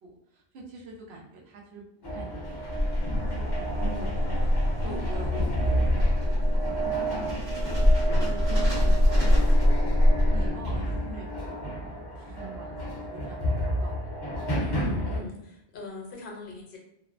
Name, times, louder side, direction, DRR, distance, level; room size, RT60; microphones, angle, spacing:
voice 1, 0.0-1.8 2.1-7.8 8.2-11.8 12.2-14.0, right 3 dB, 85° right, -2 dB, 0.9 m, -45 dB
sound 1, 2.0-15.2, equal, 30° left, 0.5 m, -31 dB
sound 2, 2.5-10.7, left 1 dB, 55° right, 1.2 m, -24 dB
voice 2, 14.6-16.8, left 2 dB, 60° left, 0 dB, 0.8 m, -40 dB
2.5 x 2.0 x 2.4 m, 0.77 s
omnidirectional pair, 1.0 m